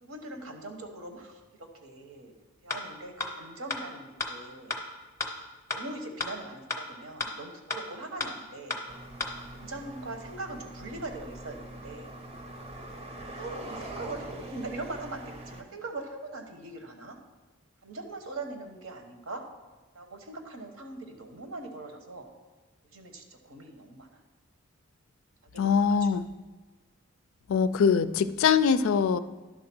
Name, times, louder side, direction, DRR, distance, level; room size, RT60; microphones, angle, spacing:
voice 1, 0.0-2.3 2.6-4.7 5.7-8.8 9.5-12.1 13.3-17.2 17.8-19.4 19.9-22.3 22.9-24.1 25.5-26.1, right 2 dB, 70° right, 4 dB, 1.1 m, -41 dB
sound 1, 2.7-2.8 3.2-3.3 3.7-3.8 4.2-4.3 4.7-4.8 5.2-5.3 5.7-5.8 6.2-6.3 6.7-6.8 7.2-7.3 7.7-7.8 8.2-8.3 8.7-8.8 9.2-9.3, left 3 dB, 15° left, 0.7 m, -31 dB
sound 2, 8.9-15.6, right 1 dB, 30° right, 0.7 m, -43 dB
voice 2, 25.6-26.2 27.5-29.2, left 6 dB, 65° left, 13 dB, 0.3 m, -23 dB
11.0 x 3.8 x 6.0 m, 1.2 s
head